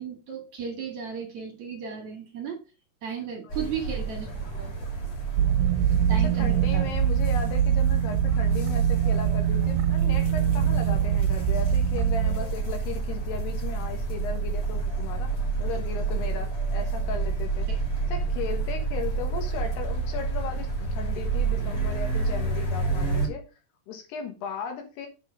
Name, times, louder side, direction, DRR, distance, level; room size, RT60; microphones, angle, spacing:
voice 1, 0.0-2.6 3.0-4.7 6.1-6.9 17.7-17.8, right 6 dB, 55° right, 2.7 m, -35 dB
sound 1, 3.5-23.3, right 4 dB, 40° left, 2.9 m, -30 dB
sound 2, 5.4-12.5, right 9 dB, 80° right, 2.6 m, -23 dB
voice 2, 6.2-15.3 15.6-17.7 18.1-23.4 23.9-25.1, left 6 dB, 80° left, 3.6 m, -36 dB
8.3 x 4.4 x 5.2 m
omnidirectional pair, 4.7 m